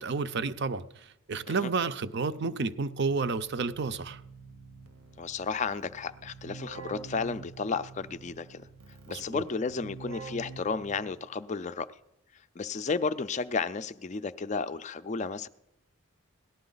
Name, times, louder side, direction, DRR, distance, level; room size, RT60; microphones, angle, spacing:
voice 1, 0.0-4.2 9.1-9.4, right 4 dB, 50° right, 0.5 m, -31 dB
Keyboard (musical), 3.3-11.3, right 5 dB, 70° right, 0.9 m, -47 dB
voice 2, 5.2-8.6 9.1-11.9 12.3-15.5, left 4 dB, 30° left, 0.4 m, -33 dB
18.0 x 12.0 x 3.9 m
head